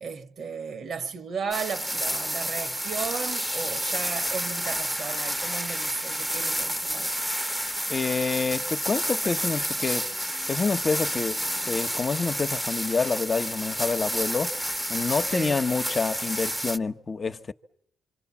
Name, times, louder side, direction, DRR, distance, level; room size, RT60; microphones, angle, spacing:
voice 1, 0.0-7.1 15.3-15.6, right 6 dB, 55° right, 1.4 m, -35 dB
sound 1, 1.5-16.8, equal, 5° right, 1.0 m, -30 dB
voice 2, 7.9-10.1 10.5-14.5 14.9-17.5, left 4 dB, 35° left, 1.0 m, -27 dB
26.0 x 26.0 x 7.2 m
cardioid pair, 90°, 0 cm